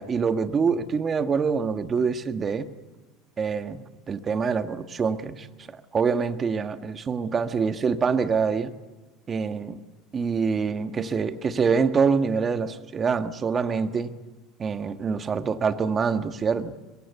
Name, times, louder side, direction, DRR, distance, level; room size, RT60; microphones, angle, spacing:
voice 1, 0.0-2.7 3.4-8.7 9.3-9.8 10.1-14.1 14.6-16.7, right 5 dB, 30° right, 10 dB, 1.4 m, -25 dB
23.5 x 22.5 x 8.2 m, 1.3 s
supercardioid pair, 115°, 0 cm